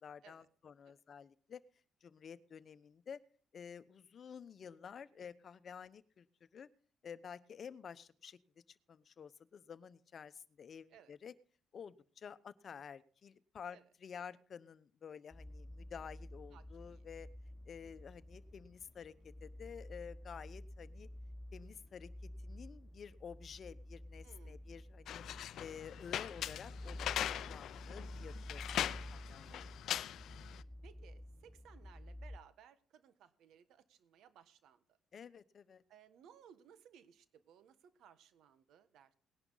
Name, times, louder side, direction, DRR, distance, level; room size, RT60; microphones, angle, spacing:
voice 1, 0.0-1.6 2.0-3.2 3.5-6.3 6.5-6.7 7.0-8.4 8.7-11.3 11.7-17.3 17.7-19.1 19.4-21.1 21.5-22.1 22.4-25.2 25.6-29.6 35.1-35.8, left 7 dB, 50° left, 15 dB, 0.9 m, -51 dB
sound 1, 15.3-32.4, left 1 dB, 15° left, 0.6 m, -50 dB
voice 2, 16.5-17.0 17.8-17.9 24.2-24.6 29.5-29.7 30.8-34.8 35.9-39.2, right 8 dB, 75° right, 13 dB, 1.4 m, -62 dB
sound 2, 25.1-30.6, left 11 dB, 70° left, 0.5 m, -41 dB
19.0 x 11.0 x 4.0 m, 0.43 s
supercardioid pair, 70°, 0 cm